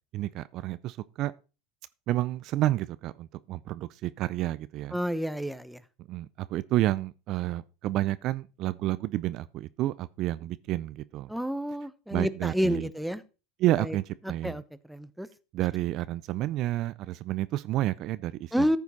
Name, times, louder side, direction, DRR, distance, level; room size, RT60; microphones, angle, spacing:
voice 1, 0.1-1.3 2.1-5.0 6.1-11.3 12.1-12.9 13.6-14.6 15.5-18.7, right 15 dB, 50° right, 0.4 m, -30 dB
voice 2, 4.9-5.8 11.3-13.2 13.8-14.0 14.4-14.6 14.9-15.3 18.5-18.8, equal, ahead, 0.9 m, -29 dB
14.0 x 7.0 x 4.0 m
hypercardioid pair, 80°, 0 cm